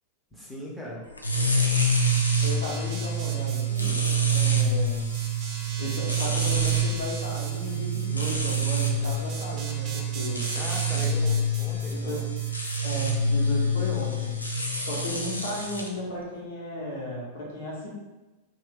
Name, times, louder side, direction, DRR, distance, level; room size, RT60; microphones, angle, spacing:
voice 1, 0.3-1.0 10.5-12.3, left 1 dB, 5° left, -4 dB, 0.8 m, -39 dB
sound 1, 1.2-15.9, right 2 dB, 85° left, 0.4 m, -26 dB
sound 2, 1.8-12.8, right 3 dB, 40° right, 0.5 m, -41 dB
voice 2, 2.4-4.0 4.3-5.1 5.8-10.4 10.9-11.0 11.9-12.2 12.8-14.4 14.8-17.9, left 1 dB, 60° left, -4 dB, 1.1 m, -35 dB
2.7 x 2.4 x 3.5 m, 1.1 s
figure-of-eight pair, 90°, 0 cm